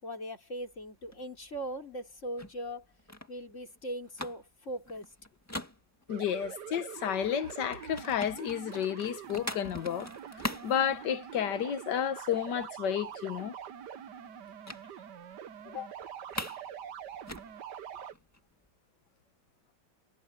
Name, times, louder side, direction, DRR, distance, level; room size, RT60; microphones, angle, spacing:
voice 1, 0.0-2.9 3.3-5.1, right 1 dB, 40° left, 4.5 m, -40 dB
sound 1, 0.6-6.4 6.8-11.7 11.9-12.2 12.5-12.6 12.9-13.6 14.7-14.9 15.2-15.3 15.7-16.7 17.0-18.7, left 1 dB, 10° left, 1.6 m, -43 dB
voice 2, 6.1-10.1 10.4-13.5 15.6-15.9, left 9 dB, 70° left, 1.7 m, -32 dB
sound 2, 6.1-18.1, right 9 dB, 65° right, 1.6 m, -45 dB
omnidirectional pair, 2.0 m